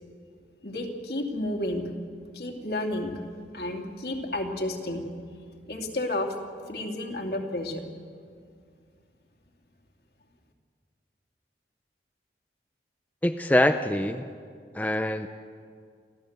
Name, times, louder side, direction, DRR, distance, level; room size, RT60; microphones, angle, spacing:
voice 1, 0.6-1.8 2.3-3.2 3.5-5.0 5.7-6.3 6.7-7.8, left 1 dB, 60° left, 2 dB, 2.6 m, -31 dB
voice 2, 13.2-14.3 14.7-15.3, left 1 dB, 10° left, 7 dB, 0.5 m, -24 dB
29.0 x 14.0 x 8.0 m, 2.2 s
head